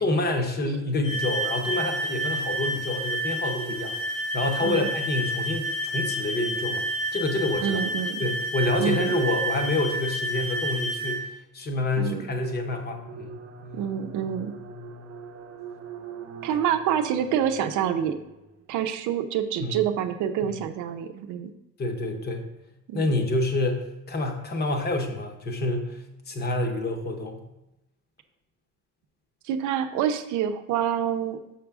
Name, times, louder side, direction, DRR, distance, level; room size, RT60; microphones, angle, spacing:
voice 1, 0.0-6.8 7.1-7.8 8.2-13.4 19.6-19.8 20.4-20.5 21.8-22.5 22.9-27.5, left 2 dB, 35° left, 4 dB, 0.9 m, -28 dB
sound 1, 1.0-11.2, right 1 dB, 85° left, 1.7 m, -30 dB
voice 2, 7.6-8.2 8.8-9.2 12.0-12.3 13.7-14.5 16.4-18.1 18.7-21.5 22.9-23.1 29.4-31.4, right 9 dB, 90° right, 7 dB, 0.6 m, -27 dB
sound 2, 11.8-18.7, right 4 dB, 50° right, 0.7 m, -42 dB
6.1 x 5.8 x 3.5 m, 0.93 s
cardioid pair, 165°, 29 cm